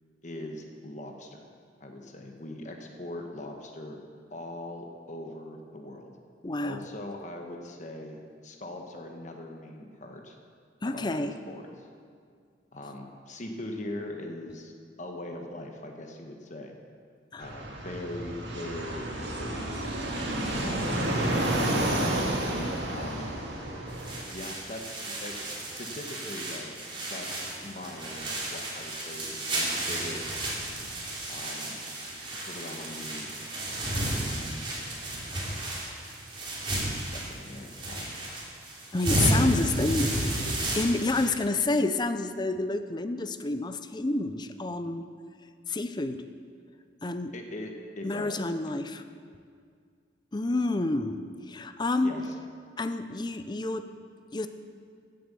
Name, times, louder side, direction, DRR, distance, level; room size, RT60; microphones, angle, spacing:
voice 1, 0.2-1.4 1.8-4.0 4.3-6.1 6.6-10.4 10.8-11.9 12.7-14.7 15.0-16.7 17.4-19.9 20.4-21.6 22.9-23.4 24.3-25.4 25.6-26.8 27.1-30.6 31.3-31.8 32.4-33.4 34.2-34.6 36.8-38.1 40.1-40.6 47.3-48.7 52.0-52.3, left 1 dB, 40° left, 3 dB, 1.2 m, -41 dB
voice 2, 6.4-6.8 10.8-11.3 17.3-17.5 38.9-40.1 40.7-45.1 45.7-46.2 47.0-47.3 48.0-49.0 50.3-51.2 51.5-52.1 52.8-53.8 54.3-54.5, left 2 dB, 25° left, 9 dB, 0.5 m, -29 dB
Fixed-wing aircraft airplane, 17.4-24.2, right 1 dB, 65° right, 2.4 m, -30 dB
sound 1, 23.9-41.3, right 1 dB, 30° right, 3.0 m, -32 dB
16.0 x 7.7 x 6.8 m, 2.1 s
head